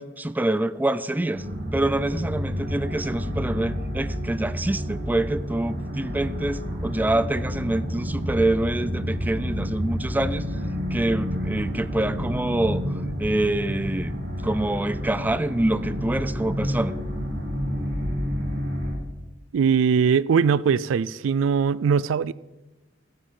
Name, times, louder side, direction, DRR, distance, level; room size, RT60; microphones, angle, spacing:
voice 1, 0.0-1.4 1.7-10.4 10.9-12.8 13.2-14.1 14.4-17.0, right 1 dB, 10° right, 0.4 m, -26 dB
sound 1, 1.3-18.9, equal, 65° right, 4.2 m, -29 dB
voice 2, 19.5-22.3, right 6 dB, 80° right, 0.3 m, -21 dB
15.0 x 9.6 x 4.3 m
head